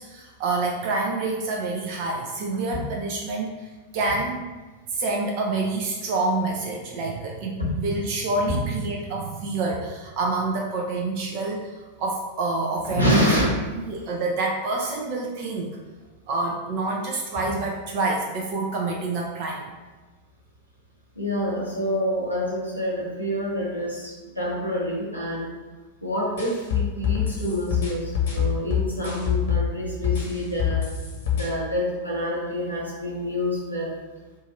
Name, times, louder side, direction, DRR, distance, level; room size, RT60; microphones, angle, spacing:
voice 1, 0.0-4.4 4.9-13.4 13.9-15.7 16.3-19.7, right 3 dB, 45° right, 0 dB, 0.5 m, -27 dB
voice 2, 12.9-13.5 21.2-25.5 26.0-30.9 31.3-33.9, equal, 90° right, -6 dB, 1.1 m, -27 dB
sound 1, 26.4-29.7 30.0-31.5, left 8 dB, 55° left, 1.0 m, -25 dB
3.7 x 2.5 x 4.1 m, 1.3 s
figure-of-eight pair, 90°, 0 cm